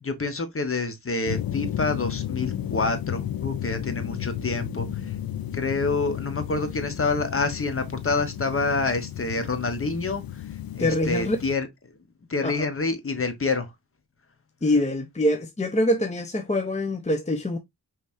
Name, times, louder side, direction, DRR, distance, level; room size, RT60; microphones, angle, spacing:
voice 1, 0.0-4.9 5.5-10.2 10.7-11.7 12.3-13.7, left 3 dB, 35° left, 1.2 m, -27 dB
sound 1, 1.3-11.6, left 11 dB, 60° left, 0.6 m, -33 dB
voice 2, 10.8-11.4 12.4-12.7 14.6-17.6, left 1 dB, 15° left, 0.7 m, -24 dB
5.3 x 3.3 x 2.6 m
cardioid pair, 70°, 41 cm